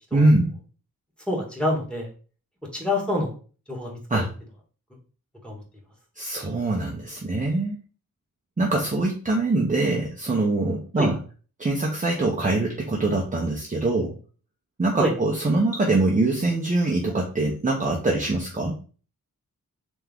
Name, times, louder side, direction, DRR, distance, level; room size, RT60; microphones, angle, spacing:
voice 1, 0.1-0.5 4.1-4.3 6.2-7.8 8.6-11.2 11.6-14.2 14.8-18.7, right 2 dB, 20° right, -1 dB, 0.7 m, -23 dB
voice 2, 1.3-2.1 2.7-3.3 3.7-4.3 5.4-5.6 11.0-11.1 15.0-15.1, left 1 dB, 5° left, -2 dB, 1.6 m, -26 dB
3.5 x 3.1 x 3.5 m, 0.38 s
wide cardioid pair, 75°, 36 cm